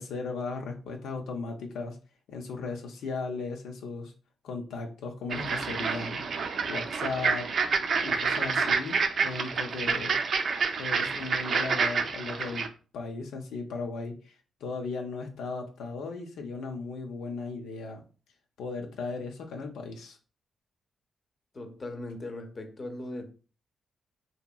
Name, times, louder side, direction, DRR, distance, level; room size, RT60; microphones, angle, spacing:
voice 1, 0.0-2.0 2.3-4.1 4.4-6.2 6.7-7.5 8.0-10.2 10.8-12.7 12.9-14.4 14.6-18.0 18.6-20.2, left 4 dB, 90° left, 0.5 m, -36 dB
Ducks quacking, 5.3-12.7, right 5 dB, 65° right, 0.4 m, -28 dB
voice 2, 21.5-23.3, left 1 dB, 40° left, 0.7 m, -38 dB
2.7 x 2.7 x 2.2 m
cardioid pair, 70°, 0 cm